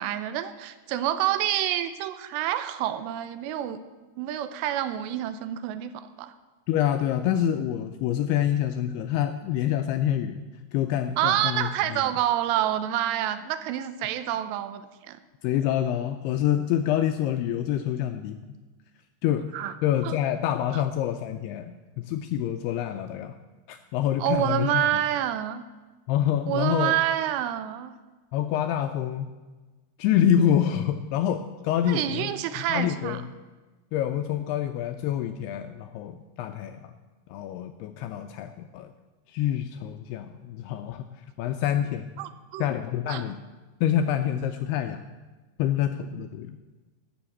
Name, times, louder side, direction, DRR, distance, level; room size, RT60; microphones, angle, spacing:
voice 1, 0.0-3.8 4.2-6.3 11.2-15.2 19.5-19.7 20.0-20.1 24.2-25.6 26.5-27.9 31.9-33.2 42.2-42.7 43.1-43.2, right 11 dB, 80° right, 12 dB, 2.7 m, -28 dB
voice 2, 6.7-10.4 10.7-12.0 15.4-18.4 19.2-19.5 19.8-23.4 23.7-24.9 26.1-27.0 28.3-29.3 30.0-33.2 33.9-36.9 37.3-38.9 39.3-41.1 41.4-42.1 42.6-43.4 43.8-45.0 45.6-46.6, left 10 dB, 85° left, 7 dB, 2.3 m, -26 dB
13.0 x 6.3 x 8.6 m, 1.2 s
omnidirectional pair, 5.1 m